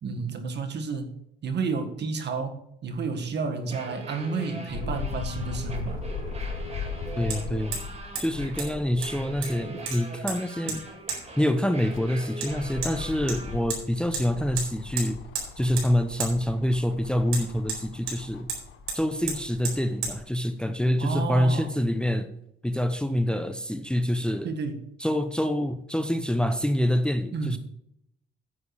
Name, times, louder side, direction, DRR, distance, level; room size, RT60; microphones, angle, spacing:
voice 1, 0.0-6.0 9.6-9.8 10.7-10.8 21.0-21.7 24.4-24.8 27.3-27.6, right 4 dB, 55° right, 8 dB, 1.7 m, -31 dB
sound 1, 3.6-13.6, right 2 dB, 30° right, 2.4 m, -41 dB
sound 2, 4.7-9.7 10.2-10.3 11.6-20.2 20.9-21.0, left 5 dB, 75° left, 1.1 m, -38 dB
Hammer, 5.4-5.5 7.3-7.4 7.7-7.9 8.2-8.3 8.6-8.7 9.0-9.6 9.9-10.4 10.7-10.8 11.1-11.2 12.4-12.5 12.8-12.9 13.3-13.8 14.1-14.3 14.6-14.7 15.0-15.5 15.8-15.9 16.2-16.3 17.3-18.2 18.5-18.6 18.9-19.0 19.3-19.4 19.6-19.8 20.0-20.1, right 5 dB, 80° right, 4.6 m, -32 dB
voice 2, 7.2-7.7 8.2-10.9 11.4-15.2 15.6-18.5 18.9-22.3 22.6-24.5 25.0-27.6, equal, 5° left, 9 dB, 0.7 m, -26 dB
9.8 x 7.9 x 4.8 m, 0.76 s
cardioid pair, 110°, 21 cm